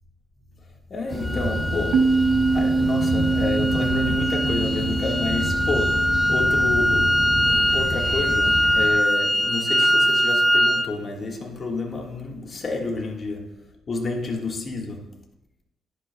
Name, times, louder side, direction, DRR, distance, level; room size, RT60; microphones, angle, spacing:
voice 1, 0.3-15.2, left 3 dB, 35° left, 1.7 m, -30 dB
sound 1, 1.1-8.9, equal, 25° right, 2.3 m, -29 dB
sound 2, 1.2-10.9, equal, 5° left, 0.5 m, -22 dB
sound 3, 1.9-7.3, right 3 dB, 65° right, 0.6 m, -25 dB
11.0 x 11.0 x 2.3 m
cardioid pair, 125°, 0 cm